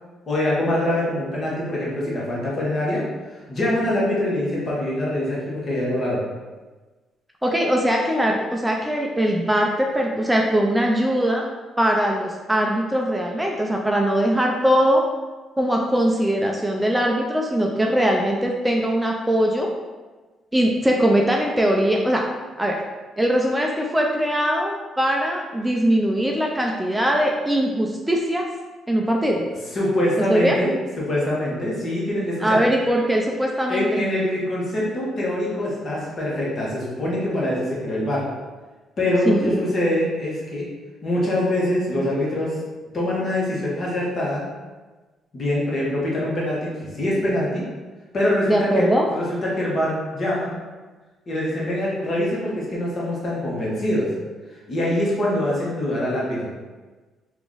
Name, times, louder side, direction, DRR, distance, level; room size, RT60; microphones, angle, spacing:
voice 1, 0.3-3.0 3.3-6.2 29.7-32.6 33.7-38.2 39.0-40.7 41.0-42.5 42.9-44.4 45.3-47.6 48.1-50.5 51.3-54.1 54.7-56.5, left 1 dB, 45° left, -5 dB, 1.2 m, -24 dB
voice 2, 7.4-11.5 11.8-15.0 15.6-19.7 20.5-22.3 22.6-22.8 23.2-28.5 28.9-29.5 30.3-30.6 32.4-34.0 39.3-39.6 48.5-49.1, equal, 10° right, 0 dB, 0.4 m, -21 dB
2.9 x 2.5 x 3.8 m, 1.3 s
cardioid pair, 90°, 0 cm